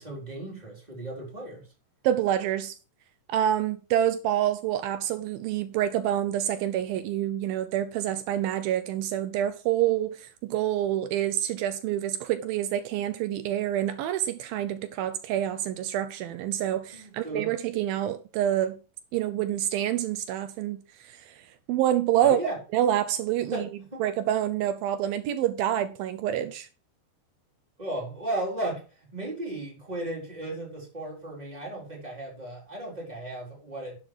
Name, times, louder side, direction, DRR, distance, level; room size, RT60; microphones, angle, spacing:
voice 1, 0.0-1.7 16.9-17.5 22.2-22.6 23.5-24.1 27.8-34.0, right 1 dB, 10° right, 3.7 m, -35 dB
voice 2, 2.0-2.7 3.3-18.8 19.1-22.4 22.7-23.7 24.0-26.7, right 11 dB, 90° right, 2.0 m, -27 dB
11.5 x 6.5 x 4.8 m
omnidirectional pair, 5.0 m